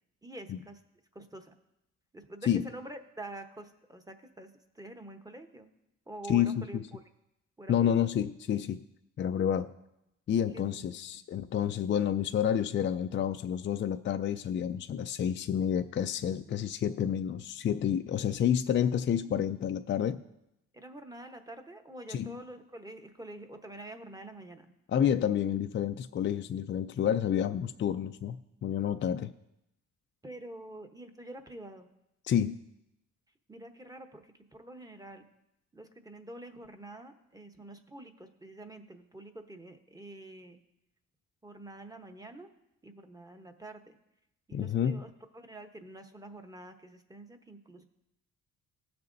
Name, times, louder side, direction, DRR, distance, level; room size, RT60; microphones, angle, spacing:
voice 1, 0.2-0.8 1.1-1.5 2.1-4.5 4.7-5.7 6.1-7.0 7.6-8.0 10.5-10.8 11.1-11.2 19.2-19.4 20.7-24.7 30.2-31.9 33.5-35.2 35.7-40.6 41.4-42.5 42.8-43.9 44.5-47.8, right 1 dB, 10° right, 6 dB, 0.9 m, -47 dB
voice 2, 6.3-6.8 7.7-8.8 9.2-9.7 10.3-20.2 22.1-22.3 24.9-29.3 32.3-32.6 44.5-45.0, left 9 dB, 40° left, 8 dB, 0.4 m, -29 dB
16.5 x 6.8 x 2.6 m, 0.86 s
cardioid pair, 90°, 30 cm